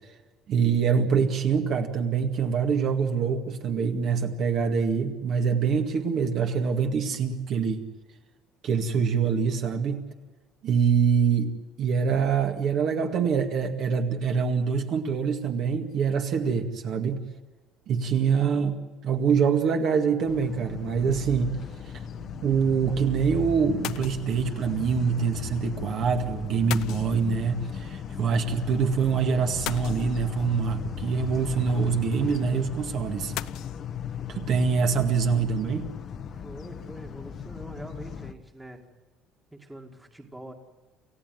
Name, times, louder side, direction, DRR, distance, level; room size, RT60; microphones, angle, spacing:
voice 1, 0.5-7.8 8.6-10.0 10.6-11.5 11.8-17.2 17.9-21.6 22.4-33.3 34.3-35.9, right 6 dB, 45° right, 4 dB, 2.0 m, -25 dB
sound 1, 20.3-38.3, left 7 dB, 35° left, 1.2 m, -37 dB
sound 2, 20.9-21.2 23.8-24.5 26.7-27.6 29.7-30.6 33.4-33.8, left 14 dB, 60° left, 0.7 m, -37 dB
voice 2, 36.3-38.8 39.5-40.5, right 1 dB, 5° right, 3 dB, 2.1 m, -44 dB
28.5 x 15.5 x 9.2 m, 1.2 s
cardioid pair, 165°, 0 cm